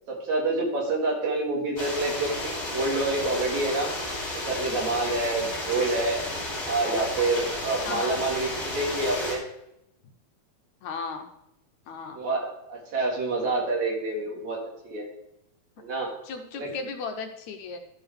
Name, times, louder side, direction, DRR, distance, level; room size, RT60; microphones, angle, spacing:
voice 1, 0.1-3.9 4.5-6.3 6.7-9.4 12.1-15.1 15.8-16.1 16.5-16.7, right 2 dB, 65° right, -1 dB, 3.3 m, -27 dB
sound 1, 1.8-9.4, left 1 dB, 30° left, 2.8 m, -32 dB
voice 2, 7.9-8.2 10.8-11.3 11.9-12.2 16.2-17.8, left 4 dB, 75° left, 5 dB, 2.1 m, -35 dB
12.5 x 6.9 x 3.5 m, 0.82 s
omnidirectional pair, 3.5 m